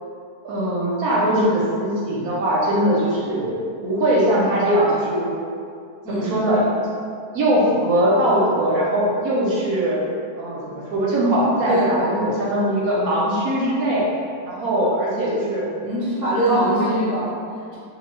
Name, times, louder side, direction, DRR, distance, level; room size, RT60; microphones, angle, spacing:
voice 1, 0.4-5.3 6.1-6.9 7.3-10.0 10.4-14.1 14.4-15.6 16.5-17.0, right 1 dB, 70° right, -5 dB, 0.9 m, -21 dB
voice 2, 6.0-6.4 11.7-12.3 15.8-17.8, right 1 dB, 20° right, -10 dB, 0.5 m, -23 dB
2.8 x 2.2 x 3.1 m, 2.3 s
omnidirectional pair, 1.9 m